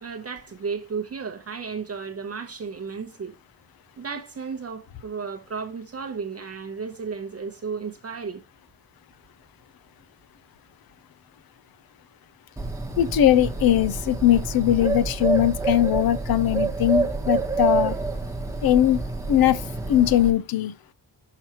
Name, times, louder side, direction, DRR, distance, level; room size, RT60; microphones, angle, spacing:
voice 1, 0.0-3.3 4.0-8.4, right 5 dB, 40° right, 0.8 m, -33 dB
Bird, 12.6-20.3, right 4 dB, 5° right, 1.0 m, -28 dB
voice 2, 13.0-18.0 18.6-19.0 19.3-20.7, left 12 dB, 65° left, 0.6 m, -20 dB
5.9 x 5.6 x 2.9 m
cardioid pair, 115°, 39 cm